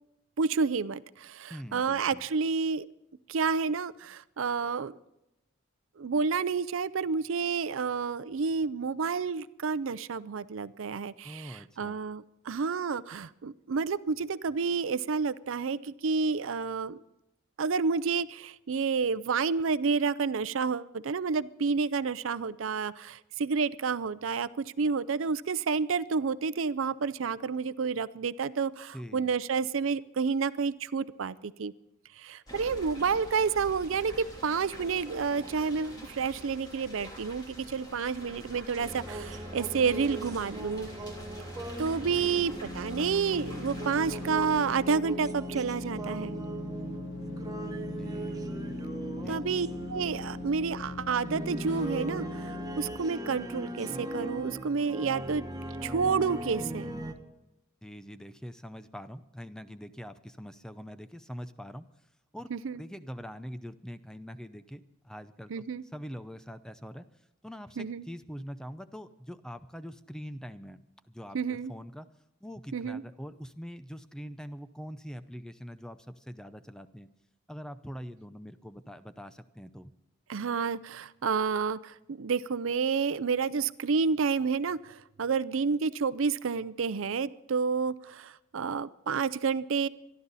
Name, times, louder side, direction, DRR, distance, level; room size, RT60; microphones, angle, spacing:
voice 1, 0.4-2.9 3.3-5.0 6.0-17.0 17.6-31.7 32.2-40.9 41.8-46.4 49.3-55.4 55.8-57.0 62.5-62.8 65.5-65.8 67.8-68.1 71.3-71.7 72.7-73.0 80.3-89.9, right 5 dB, 70° right, 16 dB, 0.5 m, -30 dB
voice 2, 1.5-2.2 11.2-12.0 28.9-29.3 42.2-42.6 48.0-48.7 49.2-49.6 57.8-61.8 62.3-62.5 62.8-65.6 65.9-67.0 67.4-72.1 72.4-77.1 77.5-79.9, equal, 5° left, 11 dB, 0.5 m, -44 dB
sound 1, 32.5-44.8, equal, 20° left, 3.4 m, -46 dB
sound 2, 38.8-57.1, right 1 dB, 20° right, 1.0 m, -39 dB
sound 3, 42.6-52.9, left 3 dB, 60° left, 1.8 m, -41 dB
25.0 x 11.5 x 4.1 m, 0.88 s
head